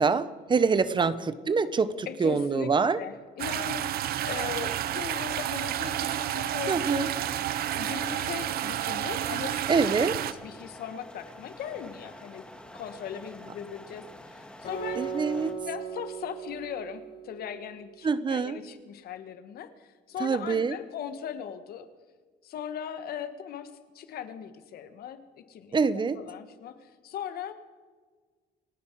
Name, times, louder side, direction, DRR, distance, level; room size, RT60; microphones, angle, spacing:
voice 1, 0.0-3.0 6.7-7.1 9.7-10.1 15.0-15.6 18.0-18.6 20.2-20.8 25.7-26.2, right 5 dB, 30° right, 15 dB, 0.7 m, -25 dB
voice 2, 2.1-2.7 3.0-3.9 4.2-7.1 7.7-9.8 10.4-12.4 12.7-15.0 15.6-21.9 22.4-25.8 26.2-27.5, left 8 dB, 65° left, 10 dB, 1.5 m, -39 dB
sound 1, 3.4-10.3, right 12 dB, 65° right, 0.8 m, -30 dB
sound 2, 7.1-15.5, left 1 dB, 5° left, 1.9 m, -48 dB
Acoustic guitar, 14.6-17.9, right 6 dB, 50° left, 6.4 m, -37 dB
27.5 x 9.5 x 4.7 m, 1.5 s
cardioid pair, 110°, 17 cm